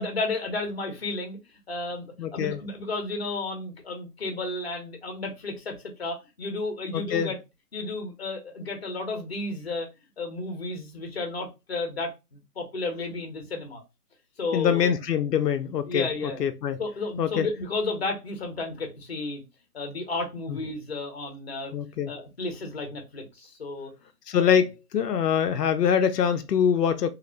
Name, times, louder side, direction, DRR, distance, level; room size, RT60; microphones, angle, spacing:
voice 1, 0.0-1.4 1.7-7.4 7.7-9.9 10.2-13.8 14.4-14.9 15.9-16.4 16.8-19.4 19.7-21.7 22.1-23.9 24.3-24.6, left 2 dB, 40° left, 0.7 m, -32 dB
voice 2, 2.2-2.6 6.9-7.3 14.5-16.1 16.4-16.8 17.2-17.5 21.7-22.1 24.3-27.1, left 8 dB, 85° left, 0.5 m, -24 dB
2.8 x 2.0 x 2.5 m
figure-of-eight pair, 160°, 47 cm